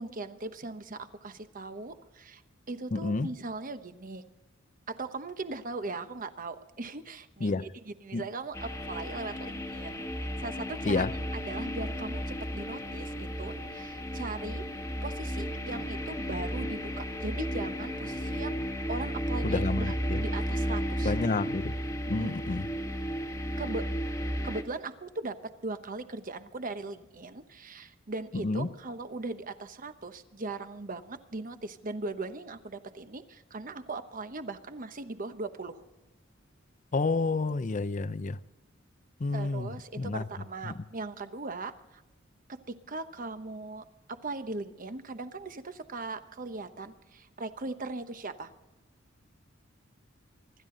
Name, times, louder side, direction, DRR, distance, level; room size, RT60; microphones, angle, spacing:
voice 1, 0.0-2.4 2.7-4.2 4.9-7.5 7.8-11.1 11.5-14.6 15.0-18.6 18.9-21.1 22.1-22.3 23.6-23.9 24.4-25.4 25.6-35.8 39.3-42.0 42.5-48.5, right 3 dB, 45° right, 1.0 m, -39 dB
voice 2, 2.9-3.3 7.4-7.7 8.1-8.2 10.8-11.1 19.4-20.2 21.0-21.7 22.1-22.7 28.4-28.7 36.9-38.4 39.2-39.7 40.0-40.2 40.7-40.8, left 3 dB, 40° left, 0.6 m, -29 dB
sound 1, 8.5-24.6, equal, 15° left, 1.5 m, -34 dB
24.5 x 12.5 x 3.9 m
head